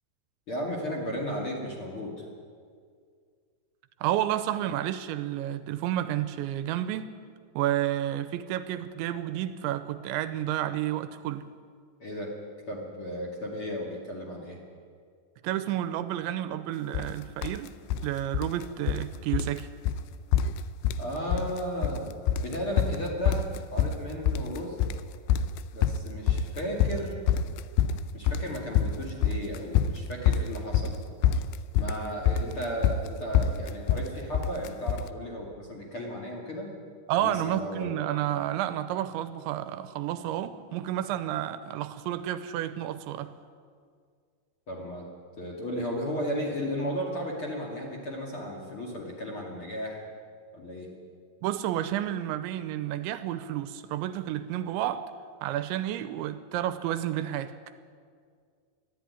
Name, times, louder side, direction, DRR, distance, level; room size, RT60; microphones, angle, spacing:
voice 1, 0.5-2.3 12.0-12.3 12.7-14.6 21.0-22.2 22.4-23.5 23.7-24.8 25.7-27.1 28.1-31.0 31.8-36.7 37.2-37.9 44.7-45.0 45.4-50.0 50.5-50.9, equal, 35° left, -1 dB, 2.5 m, -34 dB
voice 2, 4.0-7.1 7.6-11.5 15.4-17.7 18.0-19.7 37.1-43.3 51.4-55.0 55.4-57.5, right 12 dB, 85° right, 12 dB, 3.0 m, -30 dB
sound 1, 16.9-17.1 17.4-18.1 18.3-19.1 19.3-19.6 19.9-20.0 20.3-21.1 21.3-22.0 22.3-35.1, left 8 dB, 80° left, 2.5 m, -26 dB
20.0 x 13.5 x 9.6 m, 2.1 s
omnidirectional pair, 5.4 m